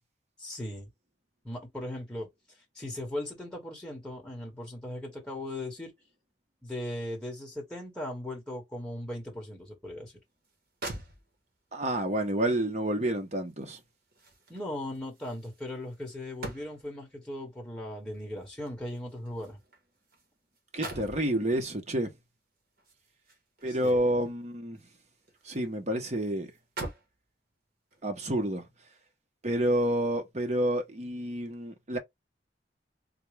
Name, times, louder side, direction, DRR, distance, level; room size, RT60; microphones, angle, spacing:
voice 1, 0.4-0.9 1.4-2.3 2.7-5.9 6.6-10.1 14.5-19.6 23.7-24.1, left 1 dB, 5° left, 1.3 m, -38 dB
sound 1, 10.4-10.5 10.8-11.7 13.1-17.0 18.1-20.3 20.5-21.3 22.8-24.3 24.8-25.7 26.0-26.1 26.5-27.2 27.9-28.1, right 2 dB, 55° right, 1.5 m, -44 dB
voice 2, 11.7-13.8 20.7-22.1 23.6-24.8 25.4-26.5 28.0-28.6 29.4-32.0, right 1 dB, 40° right, 1.0 m, -29 dB
3.6 x 2.3 x 3.2 m
head